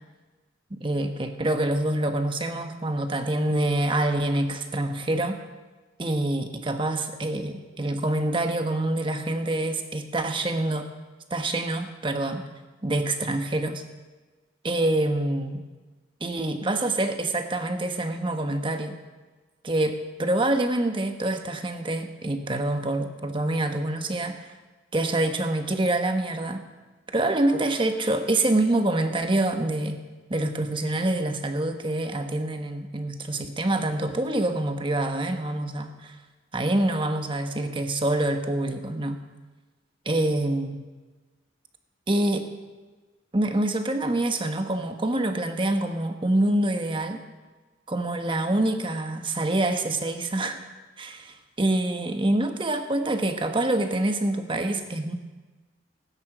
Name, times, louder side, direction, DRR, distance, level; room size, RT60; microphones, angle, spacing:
voice 1, 0.7-5.4 6.0-10.9 11.3-12.4 12.8-13.8 14.6-15.6 16.2-19.0 19.6-24.5 24.9-26.6 27.1-30.0 30.3-36.2 36.5-39.2 40.0-40.8 42.1-42.5 43.3-47.2 47.9-50.7 51.0-55.1, right 1 dB, 25° right, 6 dB, 1.1 m, -26 dB
17.5 x 9.7 x 6.1 m, 1.3 s
head